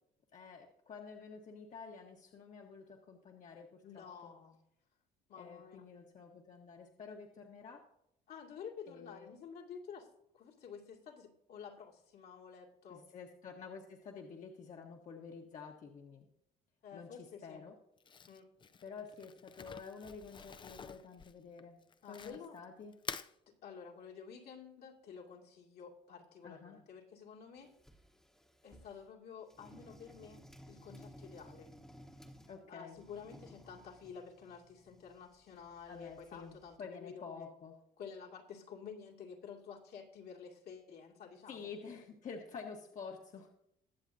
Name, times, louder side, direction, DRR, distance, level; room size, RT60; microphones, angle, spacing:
voice 1, 0.3-4.3 5.4-7.8 8.9-9.3 12.9-16.3 16.9-17.7 18.8-21.8 22.1-22.9 26.4-26.8 32.5-33.0 35.9-37.7 41.5-43.5, left 5 dB, 45° left, 1 dB, 1.4 m, -49 dB
voice 2, 3.8-4.6 5.3-5.9 8.3-10.1 10.3-13.0 16.8-17.6 18.3-18.5 22.0-22.6 23.5-27.7 28.6-31.7 32.7-37.5 38.0-41.7, left 6 dB, 70° left, -1 dB, 2.4 m, -51 dB
Crumpling crinkling, 18.0-22.6 22.9-23.3, left 6 dB, 30° left, 0.5 m, -48 dB
sound 1, 27.6-29.1 29.5-32.6 32.9-36.8, equal, 5° left, 1.1 m, -58 dB
21.5 x 7.3 x 2.8 m, 0.79 s
cardioid pair, 110°, 17 cm